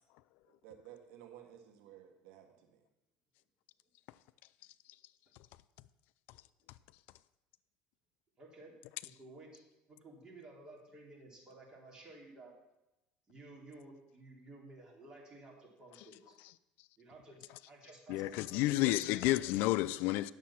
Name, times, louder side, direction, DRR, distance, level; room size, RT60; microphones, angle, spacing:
voice 1, 0.5-2.8, right 10 dB, 80° right, 1.4 m, -55 dB
voice 2, 8.4-8.7 9.0-9.6 9.9-12.5 13.3-16.4 17.0-19.3, right 2 dB, 25° right, 3.0 m, -54 dB
voice 3, 18.1-20.3, left 17 dB, 70° left, 0.3 m, -30 dB
9.6 x 7.2 x 5.8 m
cardioid pair, 135°, 3 cm